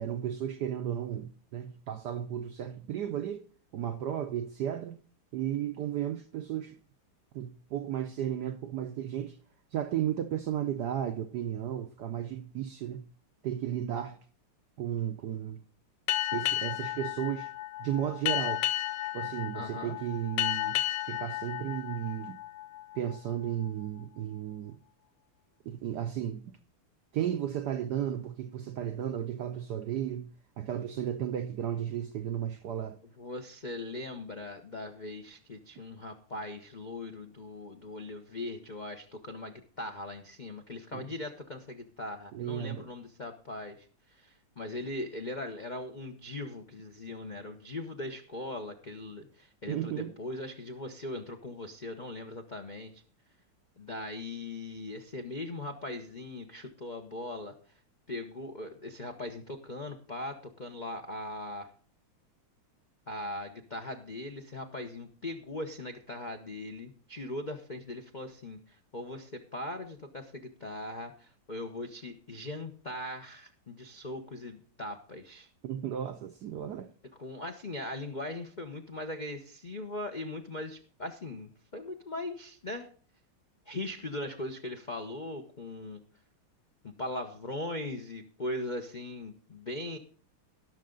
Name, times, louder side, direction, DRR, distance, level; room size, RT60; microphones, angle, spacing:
voice 1, 0.0-3.4 3.7-5.0 5.3-6.8 7.3-9.4 9.7-13.1 13.4-14.2 14.8-15.6 16.3-17.5 17.8-18.6 19.1-22.4 22.9-24.8 25.6-26.5 27.1-30.3 30.6-33.0 40.9-41.1 42.3-42.9 49.7-50.1 75.6-76.9, right 10 dB, 70° right, 1.0 m, -34 dB
Boat Water vehicle, 16.1-23.1, left 14 dB, 85° left, 1.9 m, -33 dB
voice 2, 19.5-20.0 33.2-53.0 53.8-57.5 58.1-61.7 63.1-75.5 77.2-82.9 83.7-86.0 86.8-90.0, left 1 dB, 55° left, 0.5 m, -40 dB
18.0 x 6.5 x 3.8 m
omnidirectional pair, 2.4 m